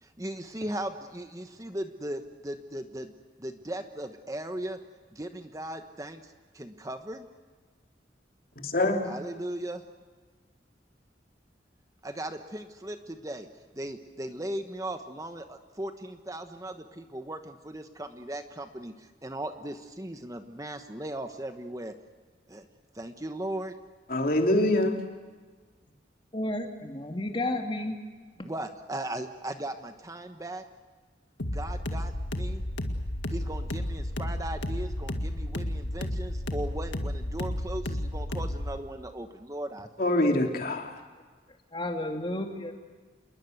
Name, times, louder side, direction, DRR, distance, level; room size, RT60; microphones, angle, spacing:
voice 1, 0.0-3.1 3.4-4.8 5.1-7.2 9.1-9.8 12.0-13.5 13.8-21.9 22.5-22.6 22.9-23.7 28.4-30.6 31.5-32.6 33.3-39.9, right 1 dB, 20° right, 7 dB, 1.2 m, -37 dB
voice 2, 8.6-9.1 24.1-25.0 40.0-40.9, left 1 dB, 50° left, 3 dB, 3.2 m, -24 dB
voice 3, 26.3-28.0 41.7-42.7, left 1 dB, 30° left, 3 dB, 2.9 m, -32 dB
sound 1, 31.4-38.8, left 1 dB, 90° left, 2.0 m, -32 dB
28.0 x 21.0 x 8.0 m, 1.4 s
head